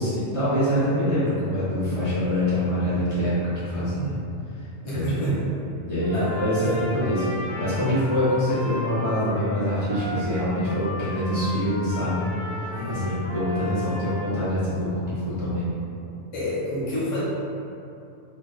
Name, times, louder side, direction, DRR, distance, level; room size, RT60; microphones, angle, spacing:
voice 1, 0.0-4.2 4.9-5.3 5.8-7.2 7.6-15.7, left 1 dB, 60° left, -11 dB, 1.6 m, -25 dB
voice 2, 4.8-5.5 6.1-7.2 12.7-13.2 16.3-17.2, equal, 30° left, -10 dB, 0.9 m, -29 dB
Trumpet, 6.0-14.3, equal, ahead, 0.6 m, -36 dB
3.7 x 2.5 x 3.8 m, 2.7 s
omnidirectional pair, 1.4 m